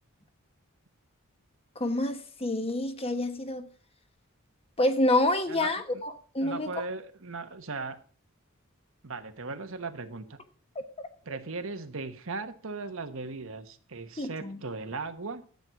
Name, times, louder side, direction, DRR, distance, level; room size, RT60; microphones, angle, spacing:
voice 1, 1.7-3.6 4.8-6.7 11.0-11.1 14.2-14.6, left 1 dB, 30° left, 8 dB, 1.3 m, -28 dB
voice 2, 5.5-6.0 6.4-8.0 9.0-10.2 11.2-15.4, right 3 dB, 70° right, 8 dB, 1.3 m, -38 dB
12.0 x 8.0 x 5.9 m, 0.42 s
head